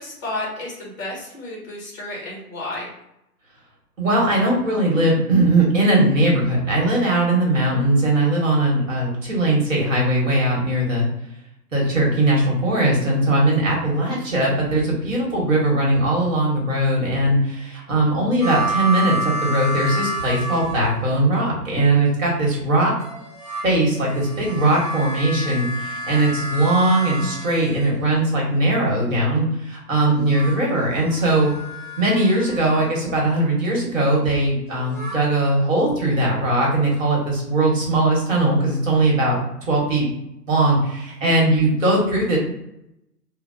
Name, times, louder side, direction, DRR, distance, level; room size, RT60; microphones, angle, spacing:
voice 1, 0.0-2.9 41.2-41.3, left 2 dB, 10° left, -3 dB, 0.6 m, -32 dB
voice 2, 4.0-11.0 11.7-22.9 23.6-31.5 32.0-39.4 39.7-40.0 40.5-42.4, right 1 dB, 50° right, -2 dB, 1.4 m, -20 dB
sound 1, 18.4-21.2 23.0-28.2 30.1-32.9 34.7-35.2, right 2 dB, 25° right, 0.7 m, -30 dB
3.1 x 2.0 x 2.6 m, 0.82 s
hypercardioid pair, 150°, 49 cm